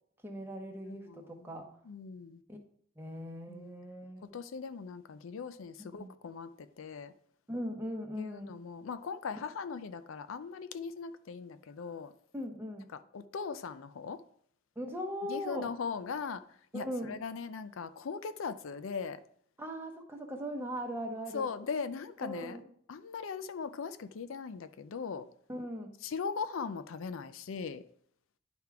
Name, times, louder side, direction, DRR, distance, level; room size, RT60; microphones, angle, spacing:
voice 1, 0.2-1.7 2.5-2.6 3.0-4.3 6.0-6.1 7.5-8.6 12.3-12.9 14.8-15.7 16.7-17.2 19.6-21.5 22.2-22.7 25.5-26.0, equal, 10° right, 0.8 m, -39 dB
voice 2, 0.9-1.5 1.9-2.4 3.5-3.7 4.2-7.1 8.2-12.1 13.1-14.2 15.3-16.4 16.7-19.2 21.3-22.6 22.9-25.2 26.0-27.8, left 5 dB, 75° left, 0.4 m, -39 dB
10.5 x 3.6 x 4.6 m
head